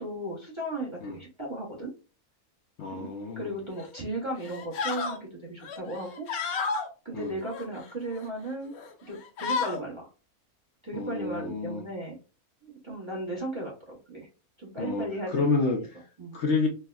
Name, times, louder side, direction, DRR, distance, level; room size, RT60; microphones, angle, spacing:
voice 1, 0.0-1.9 2.9-3.1 3.4-6.3 7.0-8.7 9.1-10.1 10.8-12.2 12.6-14.3 14.6-15.5 16.2-16.4, right 1 dB, 25° right, -3 dB, 0.7 m, -36 dB
voice 2, 2.8-3.5 7.1-7.3 10.9-11.8 14.8-16.0 16.3-16.7, left 4 dB, 65° left, 2 dB, 0.8 m, -29 dB
sound 1, 3.7-4.0 4.4-5.2 5.6-6.9 7.4-8.3 8.7-8.9 9.2-9.8, left 5 dB, 80° left, 1.1 m, -32 dB
4.3 x 2.1 x 2.2 m, 0.33 s
omnidirectional pair, 1.5 m